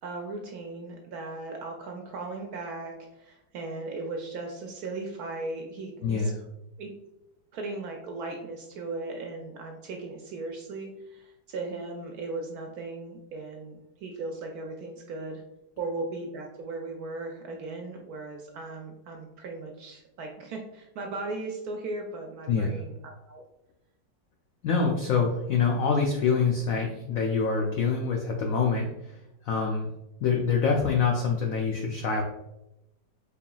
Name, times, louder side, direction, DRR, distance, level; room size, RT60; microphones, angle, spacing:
voice 1, 0.0-6.3 6.8-6.9 7.5-15.4 15.8-23.0 23.3-23.4, right 3 dB, 75° right, 2 dB, 0.9 m, -37 dB
voice 2, 6.0-6.4 22.5-22.8 24.6-29.2 29.4-29.9 30.2-32.2, left 5 dB, 80° left, 1 dB, 0.7 m, -25 dB
4.7 x 3.4 x 2.3 m, 0.91 s
omnidirectional pair, 2.0 m